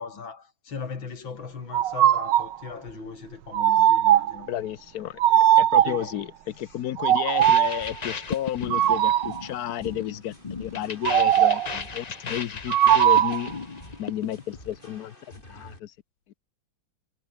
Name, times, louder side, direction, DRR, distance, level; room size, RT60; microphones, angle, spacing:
voice 1, 0.0-4.5 5.8-6.1, left 5 dB, 90° left, 3.7 m, -38 dB
sound 1, 1.7-2.6 3.5-4.4 5.2-6.1 7.0-7.8 8.7-9.4 11.0-11.8 12.7-13.5, right 11 dB, 70° right, 1.5 m, -19 dB
voice 2, 4.5-13.5 14.0-15.1 15.5-15.9, left 11 dB, 60° left, 1.2 m, -32 dB
sound 2, 7.3-14.6, left 5 dB, 45° left, 0.5 m, -36 dB
sound 3, 7.8-15.8, left 1 dB, 25° left, 5.0 m, -50 dB
omnidirectional pair, 2.1 m